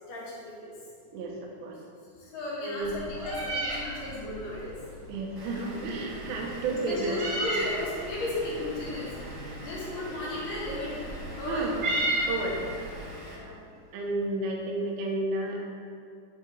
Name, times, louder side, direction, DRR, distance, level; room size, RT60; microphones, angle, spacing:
voice 1, 0.1-0.7 2.2-4.7 6.7-9.1 9.6-10.9 11.4-11.7 13.3-13.6, left 2 dB, 55° left, -7 dB, 3.2 m, -35 dB
voice 2, 1.1-1.8 2.6-2.9 5.1-7.2 11.5-11.7 12.3-12.6 13.9-15.6, right 2 dB, 85° right, 0 dB, 3.2 m, -31 dB
Meow, 2.8-12.9, right 1 dB, 65° right, 1.0 m, -35 dB
Vehicle / Engine, 5.4-13.4, right 1 dB, 40° right, 2.1 m, -44 dB
8.3 x 8.2 x 3.5 m, 2.4 s
omnidirectional pair, 5.0 m